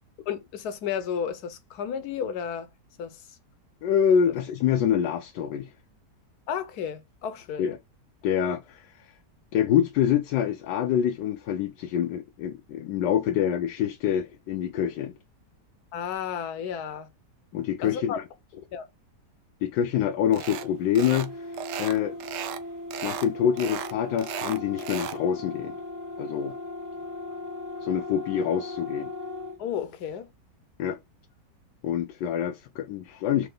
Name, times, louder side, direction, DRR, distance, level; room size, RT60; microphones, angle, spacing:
voice 1, 0.3-2.7 3.0-3.4 4.3-4.4 6.5-7.7 15.9-17.1 17.8-18.2 18.5-18.8 29.6-30.3, left 8 dB, 70° left, 1.2 m, -33 dB
voice 2, 3.8-5.7 7.6-7.8 8.2-8.9 9.5-15.1 17.5-18.1 19.6-21.5 21.8-22.1 23.0-25.7 26.2-26.6 27.8-29.1 30.8-31.0 31.8-33.5, left 9 dB, 90° left, 1.2 m, -26 dB
sound 1, 20.3-20.7 21.0-21.3 21.5-22.6 22.9-23.3 23.6-25.2, right 9 dB, 80° right, 1.2 m, -35 dB
sound 2, 20.5-29.6, left 2 dB, 15° right, 0.6 m, -38 dB
4.8 x 3.0 x 3.7 m
omnidirectional pair, 1.8 m